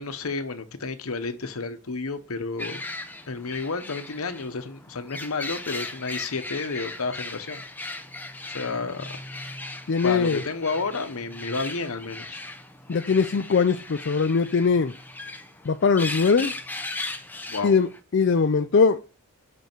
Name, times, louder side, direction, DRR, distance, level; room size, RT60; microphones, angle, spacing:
voice 1, 0.0-2.8 3.3-7.6 8.5-9.1 10.0-12.4 17.5-17.7, left 4 dB, 75° left, 0.9 m, -31 dB
sound 1, 2.6-18.0, left 2 dB, 10° left, 0.6 m, -38 dB
voice 2, 9.9-10.4 12.9-14.9 15.6-16.5 17.6-19.0, left 5 dB, 50° left, 0.4 m, -21 dB
6.3 x 5.5 x 4.5 m
head